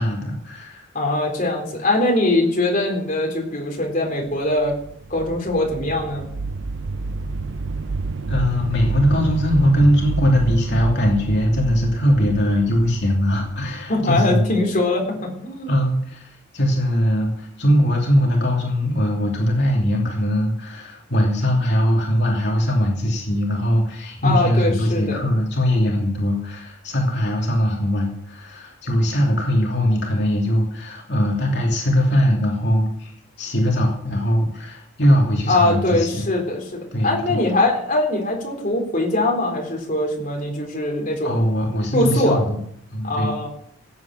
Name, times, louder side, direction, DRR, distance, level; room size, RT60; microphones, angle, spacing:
voice 1, 0.0-0.8 8.3-14.5 15.7-33.1 33.4-36.2 36.9-37.4 41.2-42.6 42.9-43.4, equal, 55° left, -1 dB, 2.8 m, -20 dB
voice 2, 0.9-4.8 5.1-6.3 13.9-15.7 24.2-25.3 35.5-41.4 41.9-42.4 43.0-43.5, left 2 dB, 40° left, 0 dB, 4.0 m, -22 dB
sound 1, 4.6-14.3, right 3 dB, 60° right, 0.6 m, -29 dB
17.0 x 8.6 x 6.1 m, 0.71 s
head